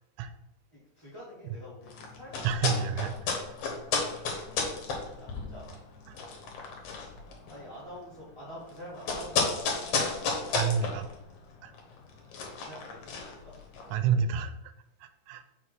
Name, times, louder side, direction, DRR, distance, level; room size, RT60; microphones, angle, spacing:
voice 1, 0.7-2.8 5.0-5.7 7.5-9.8 12.6-13.5, equal, 10° right, -10 dB, 2.0 m, -47 dB
sound 1, 1.8-14.0, left 4 dB, 80° left, 2.5 m, -33 dB
voice 2, 2.4-3.1 6.1-6.2 10.5-11.1 11.6-11.7 13.9-14.5 15.3-15.4, right 7 dB, 85° right, 10 dB, 1.9 m, -28 dB
5.9 x 5.0 x 4.6 m, 0.87 s
omnidirectional pair, 3.4 m